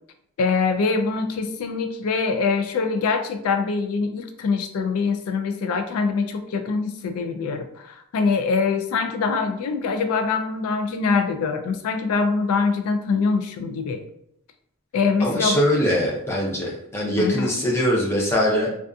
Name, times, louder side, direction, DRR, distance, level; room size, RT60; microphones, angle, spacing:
voice 1, 0.4-14.0 14.9-15.6 17.2-17.6, left 4 dB, 85° left, 7 dB, 0.3 m, -24 dB
voice 2, 15.2-18.8, equal, 10° left, -4 dB, 0.5 m, -22 dB
2.5 x 2.3 x 2.3 m, 0.75 s
head